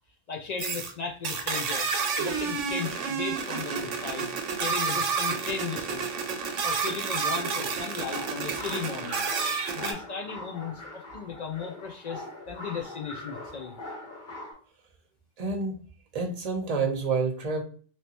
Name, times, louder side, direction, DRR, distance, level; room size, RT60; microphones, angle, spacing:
voice 1, 0.3-4.3 4.6-6.1 6.6-9.3 9.8-13.7, left 6 dB, 70° left, 2 dB, 0.4 m, -36 dB
sound 1, 0.6-0.9 1.2-9.9, right 5 dB, 85° right, 1.0 m, -30 dB
sound 2, 7.5-14.5, left 2 dB, 45° left, 0.8 m, -42 dB
voice 2, 15.4-15.7 16.1-17.6, right 4 dB, 40° right, 3 dB, 0.7 m, -28 dB
3.2 x 2.8 x 2.8 m, 0.42 s
omnidirectional pair, 1.2 m